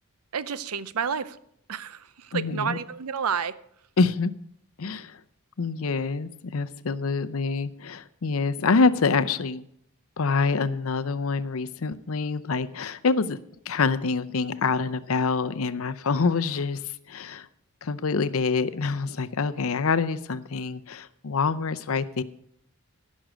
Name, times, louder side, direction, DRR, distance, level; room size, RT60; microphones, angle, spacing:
voice 1, 0.3-1.4 1.7-3.5, right 6 dB, 85° right, 15 dB, 0.6 m, -30 dB
voice 2, 2.3-2.8 4.0-4.3 4.8-5.2 5.6-9.6 10.2-13.4 13.7-16.8 17.1-17.5 17.8-22.2, left 4 dB, 65° left, 13 dB, 0.6 m, -26 dB
15.5 x 6.3 x 6.2 m, 0.71 s
head